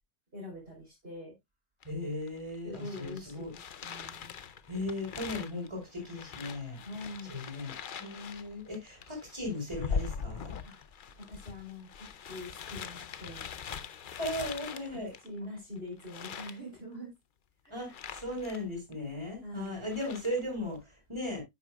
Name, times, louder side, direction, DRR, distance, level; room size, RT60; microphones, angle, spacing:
voice 1, 0.3-1.4 2.6-4.3 6.8-7.4 10.6-10.8 11.2-13.4 14.9-17.1 17.6-18.0 19.4-19.9, left 1 dB, 35° right, 3.9 m, -44 dB
sound 1, 1.8-1.9 2.3-15.6 16.0-16.6 17.8-18.6 18.9-19.0 19.7-20.4, left 6 dB, 70° left, 0.4 m, -42 dB
voice 2, 1.8-3.5 4.7-6.8 7.3-7.7 8.0-10.5 14.2-15.1 17.7-21.4, left 1 dB, 15° right, 4.6 m, -37 dB
10.0 x 8.1 x 2.3 m
omnidirectional pair, 1.7 m